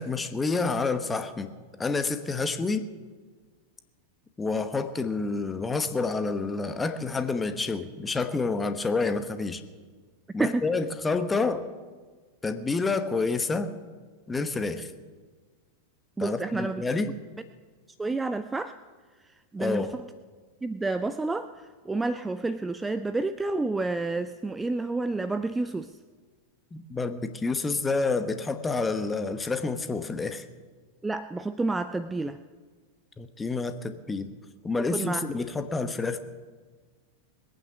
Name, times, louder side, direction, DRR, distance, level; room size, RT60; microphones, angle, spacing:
voice 1, 0.0-1.5 1.8-2.9 4.4-9.6 10.3-11.7 12.4-13.7 14.3-14.9 16.2-17.1 19.6-19.9 26.7-30.4 33.2-34.3 34.6-36.2, left 3 dB, 15° left, 10 dB, 1.0 m, -28 dB
voice 2, 16.2-16.8 18.0-18.7 19.5-19.9 20.6-21.5 21.9-25.9 31.0-32.4 34.8-35.2, right 3 dB, 10° right, 12 dB, 0.4 m, -29 dB
21.0 x 9.1 x 6.1 m, 1.5 s
figure-of-eight pair, 90°, 0 cm